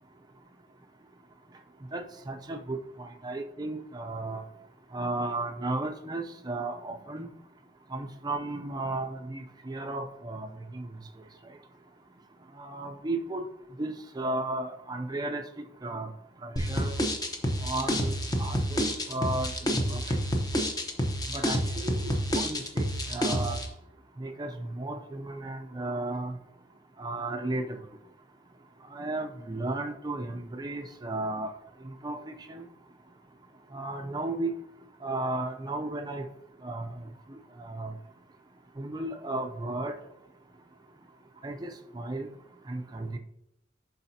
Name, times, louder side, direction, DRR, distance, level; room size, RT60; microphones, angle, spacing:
voice 1, 1.9-4.4 4.9-7.3 7.9-10.5 10.7-10.9 12.6-13.4 13.8-16.1 16.4-16.9 17.6-18.1 18.4-20.2 21.3-23.6 24.2-26.3 27.0-27.8 28.9-31.5 31.8-32.2 32.5-32.6 33.7-34.5 35.0-36.2 36.6-37.0 37.6-37.9 38.8-40.0 41.4-42.3 42.7-43.2, right 2 dB, 20° right, 5 dB, 0.5 m, -34 dB
sound 1, 16.6-23.7, equal, 20° left, 0.8 m, -28 dB
11.0 x 4.0 x 2.8 m, 0.82 s
head